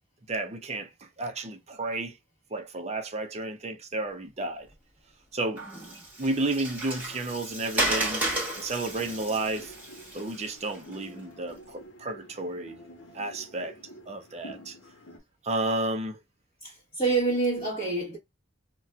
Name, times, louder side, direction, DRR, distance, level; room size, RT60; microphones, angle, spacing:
voice 1, 0.3-0.9 1.2-2.2 2.5-4.7 5.3-5.6 6.2-8.2 8.6-9.7 10.1-12.8 13.1-13.8 14.1-14.8 15.4-16.2, right 2 dB, 35° right, 0.5 m, -32 dB
voice 2, 5.6-6.1 16.6-18.2, right 3 dB, 25° left, 1.1 m, -28 dB
Water, 5.6-10.9, right 1 dB, 10° right, 1.1 m, -33 dB
sound 1, 6.1-15.2, equal, 70° left, 0.8 m, -50 dB
4.1 x 2.2 x 2.3 m
head